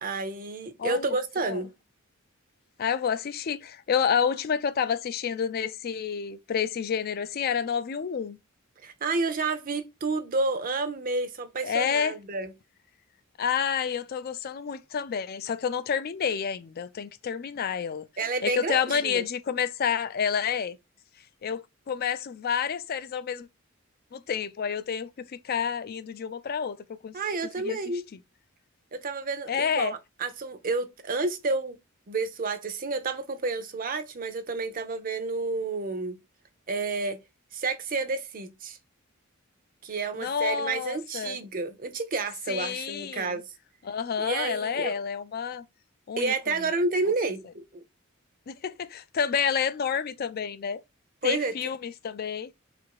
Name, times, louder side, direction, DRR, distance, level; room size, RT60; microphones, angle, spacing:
voice 1, 0.0-1.7 8.8-12.5 18.2-19.2 27.1-28.0 28.9-31.8 32.1-36.2 36.7-37.2 37.5-38.8 39.8-43.5 44.2-45.0 46.2-47.8 51.2-51.5, right 3 dB, 40° right, 0.6 m, -30 dB
voice 2, 0.8-1.6 2.8-8.4 11.6-12.1 13.4-18.1 18.4-20.8 21.4-23.5 24.1-27.1 27.6-27.8 29.5-29.9 40.2-41.4 42.5-43.4 43.8-45.6 46.1-46.5 48.5-50.8 51.2-52.5, left 7 dB, 45° left, 0.4 m, -29 dB
3.7 x 2.5 x 4.5 m
head